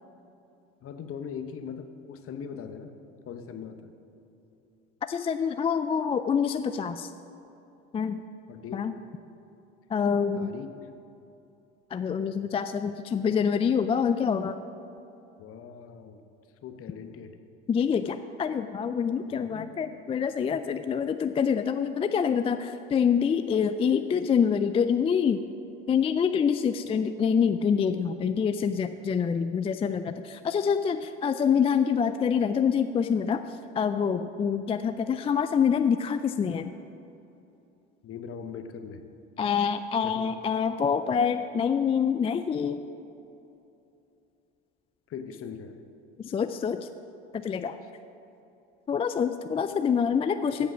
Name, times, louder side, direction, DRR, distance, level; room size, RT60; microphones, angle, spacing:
voice 1, 0.8-3.0 3.3-3.9 8.5-8.8 10.3-10.9 15.4-16.3 16.6-17.4 19.3-19.7 28.6-28.7 38.0-39.1 40.0-40.3 45.1-45.8 47.8-47.9 50.6-50.7, left 7 dB, 45° left, 8 dB, 1.0 m, -40 dB
voice 2, 5.1-7.1 7.9-8.2 8.7-8.9 9.9-10.5 11.9-14.6 17.7-25.4 25.9-33.4 33.8-36.7 39.4-42.9 46.2-46.9 47.3-47.8 48.9-50.7, left 7 dB, 20° left, 9 dB, 0.3 m, -26 dB
15.0 x 5.2 x 6.1 m, 2.8 s
hypercardioid pair, 80°, 31 cm